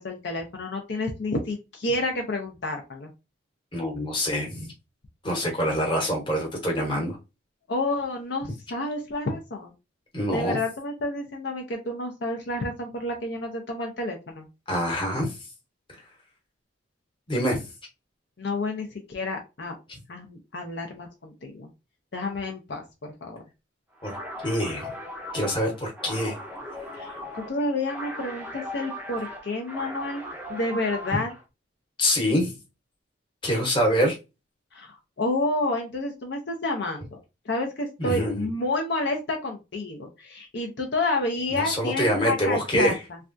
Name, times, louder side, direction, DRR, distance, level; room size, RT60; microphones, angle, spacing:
voice 1, 0.0-3.1 7.7-9.7 10.3-14.5 18.4-19.7 20.1-21.7 22.1-22.8 23.2-23.4 26.9-27.2 27.5-30.2 30.5-31.3 34.7-37.1 37.5-43.2, left 2 dB, 60° left, 0.6 m, -29 dB
voice 2, 3.7-4.7 5.2-7.2 10.1-10.6 14.7-15.4 17.3-17.6 19.9-20.0 24.0-24.2 24.4-24.9 25.3-26.4 31.1-31.2 32.0-32.6 33.4-34.2 38.0-38.5 41.6-43.0, equal, 25° left, 1.0 m, -25 dB
sound 1, 24.0-31.4, equal, 10° right, 0.5 m, -38 dB
3.3 x 2.3 x 2.5 m
head